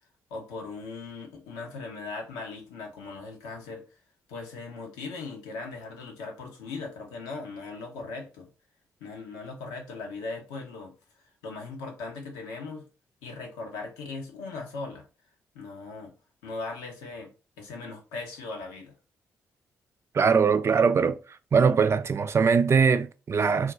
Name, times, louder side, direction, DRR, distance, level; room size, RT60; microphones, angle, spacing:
voice 1, 0.3-3.8 4.3-8.5 9.0-10.9 11.4-12.8 13.2-15.1 15.5-16.1 16.4-17.3 17.6-19.0, left 3 dB, 80° left, 0.8 m, -39 dB
voice 2, 20.1-21.2 21.5-23.7, right 5 dB, 40° right, 0.4 m, -21 dB
2.4 x 2.2 x 3.8 m
hypercardioid pair, 40°, 7 cm